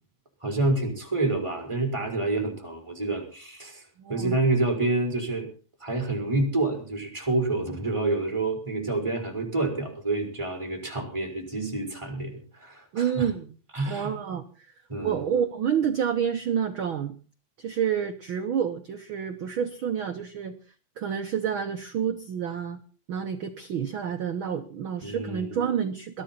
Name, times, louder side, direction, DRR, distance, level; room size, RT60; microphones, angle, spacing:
voice 1, 0.4-5.5 5.8-13.3 13.7-14.1 14.9-15.2 25.0-25.7, right 2 dB, 10° right, 2 dB, 4.4 m, -28 dB
voice 2, 4.0-4.4 12.9-13.5 13.9-14.4 15.0-17.2 17.6-20.6 21.0-22.8 23.1-26.2, right 8 dB, 85° right, 7 dB, 1.1 m, -28 dB
21.5 x 12.5 x 4.3 m, 0.38 s
omnidirectional pair, 3.7 m